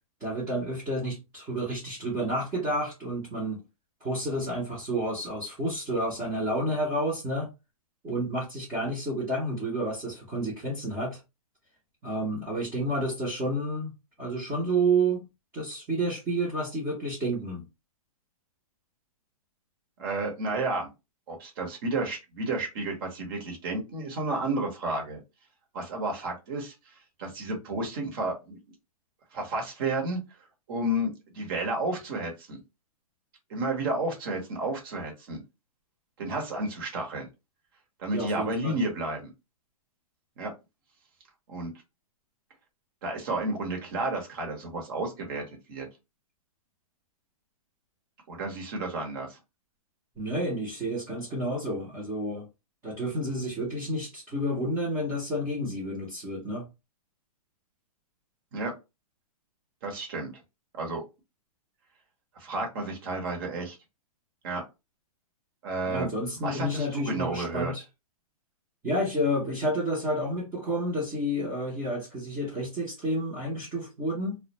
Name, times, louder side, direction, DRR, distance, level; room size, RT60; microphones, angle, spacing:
voice 1, 0.2-3.6 4.0-7.5 8.0-11.2 12.0-13.9 14.2-15.2 15.5-17.6 38.1-38.8 50.2-52.5 52.8-56.7 65.8-67.8 68.8-74.4, right 1 dB, 15° right, 0.6 m, -30 dB
voice 2, 20.0-20.9 21.3-25.2 25.7-26.7 27.2-28.6 29.3-30.2 30.7-32.6 33.5-35.4 36.2-37.3 38.0-39.3 40.4-40.5 41.5-41.7 43.0-45.9 48.3-49.4 58.5-58.7 59.8-60.3 60.7-61.0 62.3-63.8 64.4-64.6 65.6-66.1 66.4-67.7, right 2 dB, 35° right, 0.9 m, -31 dB
2.2 x 2.1 x 2.8 m
hypercardioid pair, 160°, 19 cm